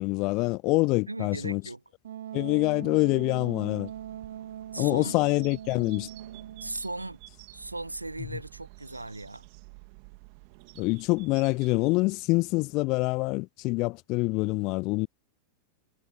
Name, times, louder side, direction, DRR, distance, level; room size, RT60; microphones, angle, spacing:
voice 1, 0.0-1.6 2.3-3.9 4.8-6.1 10.8-15.1, left 24 dB, 40° left, 0.3 m, -26 dB
voice 2, 1.1-1.8 4.7-5.1 6.6-7.2 7.5-9.5, right 2 dB, 85° right, 1.3 m, -37 dB
Wind instrument woodwind instrument, 2.0-6.9, right 10 dB, 60° right, 2.5 m, -41 dB
sound 1, 3.9-11.8, right 39 dB, 45° right, 2.1 m, -51 dB
figure-of-eight pair, 90°, 0 cm